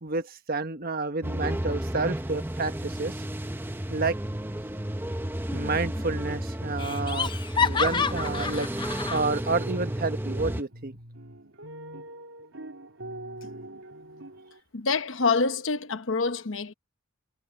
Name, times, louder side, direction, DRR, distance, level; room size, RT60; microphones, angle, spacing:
voice 1, 0.0-3.1 3.9-4.2 5.5-8.7 9.1-11.0, right 3 dB, 45° right, 1.3 m, -30 dB
sound 1, 1.2-10.6, right 1 dB, 10° right, 0.8 m, -32 dB
Laughter, 5.5-6.0 6.3-6.4 6.8-9.3, left 6 dB, 20° left, 0.5 m, -29 dB
sound 2, 10.7-14.6, right 1 dB, 70° right, 3.7 m, -44 dB
voice 2, 14.7-16.7, left 4 dB, 65° left, 1.0 m, -26 dB
head